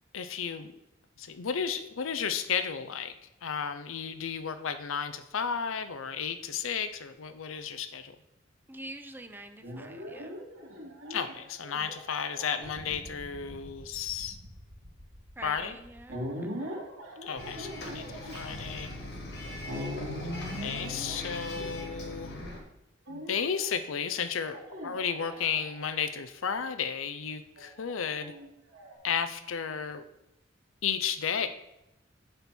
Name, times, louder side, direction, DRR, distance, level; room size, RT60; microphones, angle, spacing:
voice 1, 0.1-0.7 1.2-3.1 3.4-8.2 11.1-14.4 15.4-15.8 17.2-18.9 20.6-22.4 23.1-28.3 29.0-30.0 30.8-31.5, left 7 dB, 90° left, 11 dB, 0.6 m, -33 dB
voice 2, 8.7-10.4 15.4-16.8, right 2 dB, 10° right, 8 dB, 0.6 m, -46 dB
sound 1, 9.6-22.2 23.1-23.7 24.5-26.0 27.6-28.9, equal, 85° right, 2.9 m, -41 dB
Bus, 17.4-22.6, left 2 dB, 60° left, 1.6 m, -40 dB
8.8 x 4.4 x 6.1 m, 0.87 s
head